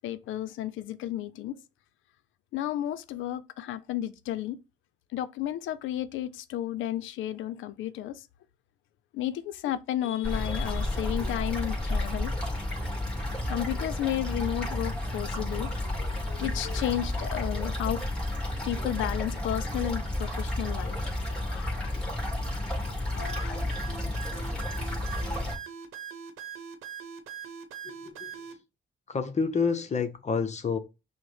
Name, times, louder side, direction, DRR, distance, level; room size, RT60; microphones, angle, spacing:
voice 1, 0.0-1.6 2.5-4.6 5.1-8.2 9.1-12.3 13.5-18.0 18.7-21.0 21.3-21.9 22.9-23.7, left 12 dB, 80° left, 0.5 m, -33 dB
sound 1, 10.2-25.6, left 1 dB, 5° left, 2.0 m, -31 dB
sound 2, 23.2-28.5, right 8 dB, 85° right, 0.9 m, -41 dB
voice 2, 27.8-28.3 29.1-30.8, left 5 dB, 35° left, 0.7 m, -29 dB
6.0 x 2.1 x 3.3 m
cardioid pair, 90°, 20 cm